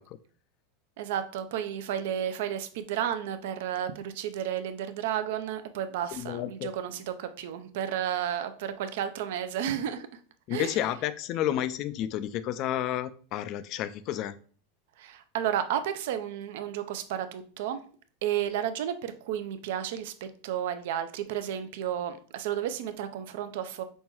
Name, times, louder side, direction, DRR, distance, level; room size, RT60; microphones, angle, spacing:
voice 1, 1.0-10.1 10.5-10.8 15.0-17.8 18.2-23.8, right 10 dB, 70° right, 10 dB, 0.4 m, -32 dB
voice 2, 6.1-6.7 10.5-14.3, left 12 dB, 50° left, 14 dB, 0.3 m, -31 dB
5.4 x 2.3 x 2.9 m, 0.43 s
supercardioid pair, 120°, 0 cm